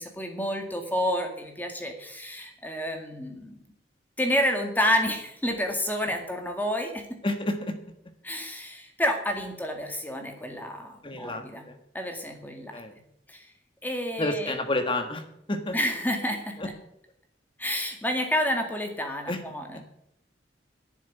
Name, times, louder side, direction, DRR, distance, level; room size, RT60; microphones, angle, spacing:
voice 1, 0.0-3.6 4.2-7.2 8.2-11.7 11.9-12.8 13.3-13.5 13.8-14.6 15.7-16.7 17.6-19.9, equal, 10° left, 4 dB, 2.0 m, -29 dB
voice 2, 7.2-7.8 11.0-11.7 12.7-12.9 14.2-15.2 15.5-15.7 16.6-16.7 19.3-19.4, left 1 dB, 30° left, 7 dB, 1.4 m, -29 dB
11.0 x 7.4 x 9.3 m, 0.77 s
head